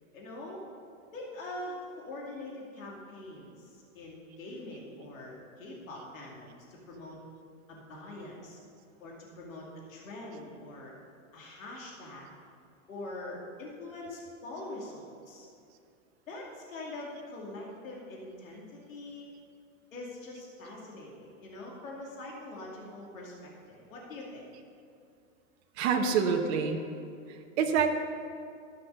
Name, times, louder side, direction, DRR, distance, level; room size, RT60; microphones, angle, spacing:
voice 1, 0.1-0.6 1.1-7.2 7.7-8.6 9.0-10.9 11.3-12.3 12.9-15.5 16.3-19.3 19.9-24.4, left 2 dB, 80° left, -3 dB, 2.6 m, -43 dB
voice 2, 25.8-26.8 27.3-27.9, right 6 dB, 55° right, 4 dB, 1.2 m, -27 dB
13.5 x 5.9 x 6.7 m, 2.4 s
hypercardioid pair, 120°, 39 cm